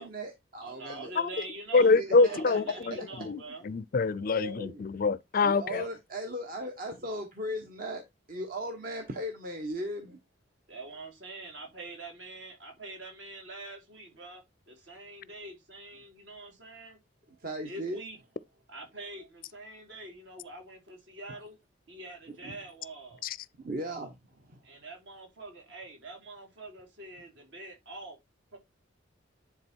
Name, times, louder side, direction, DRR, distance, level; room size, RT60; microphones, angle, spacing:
voice 1, 0.0-1.1 1.8-3.1 3.5-3.6 4.2-4.8 5.4-8.0 8.3-10.2 17.3-18.0 19.2-19.3 22.3-22.6 23.6-24.8, equal, 45° right, 1.2 m, -38 dB
voice 2, 0.6-3.6 10.7-14.4 14.7-17.0 17.7-18.2 18.7-21.6 21.9-23.2 24.6-28.2 28.5-28.6, right 2 dB, 65° right, 3.5 m, -45 dB
voice 3, 1.7-2.6 3.3-3.4 3.6-5.8 23.2-23.4, left 4 dB, 45° left, 0.4 m, -24 dB
10.5 x 3.7 x 4.5 m
head